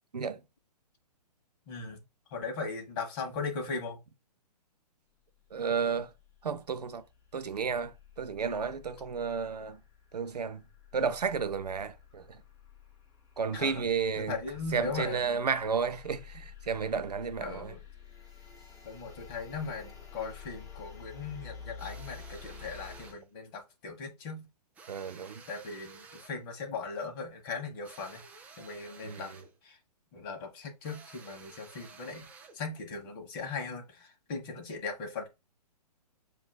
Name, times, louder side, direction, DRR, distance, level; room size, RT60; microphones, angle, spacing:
voice 1, 1.7-2.0 2.3-4.0 13.5-13.8 14.2-15.5 17.4-17.8 18.8-24.4 25.5-28.2 28.6-29.3 29.6-29.8 30.1-32.3 32.5-35.3, left 4 dB, 35° left, 1.2 m, -38 dB
sound 1, 5.5-23.1, left 7 dB, 15° left, 1.4 m, -51 dB
voice 2, 5.5-6.1 6.4-7.0 7.3-9.8 10.1-10.6 10.9-12.4 13.4-14.4 14.7-17.7 24.9-25.4 29.0-29.3, right 6 dB, 75° right, 0.6 m, -32 dB
sound 2, 21.8-23.2 24.7-26.4 27.8-29.6 30.8-32.6, right 5 dB, 5° right, 0.4 m, -53 dB
6.8 x 2.6 x 2.2 m
figure-of-eight pair, 125°, 21 cm